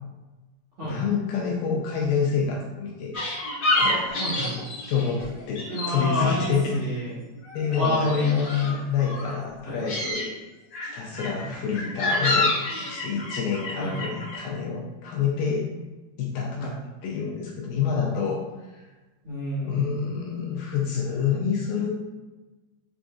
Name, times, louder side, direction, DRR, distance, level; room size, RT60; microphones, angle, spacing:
voice 1, 0.8-3.1 3.8-4.2 4.9-6.8 7.5-10.3 10.8-12.5 12.9-15.7 16.2-18.9 19.6-22.0, left 6 dB, 80° left, -2 dB, 2.1 m, -27 dB
sound 1, 3.1-5.9 6.2-7.1 7.3-9.4 9.7-10.2 10.7-14.4, left 2 dB, 50° left, 1.6 m, -28 dB
voice 2, 4.2-4.6 5.7-7.2 7.7-8.4 9.6-9.8 11.3-11.5 13.8-14.0 16.6-16.7 19.2-19.9, equal, 65° right, -13 dB, 1.4 m, -29 dB
6.6 x 2.5 x 2.4 m, 1.2 s
omnidirectional pair, 4.4 m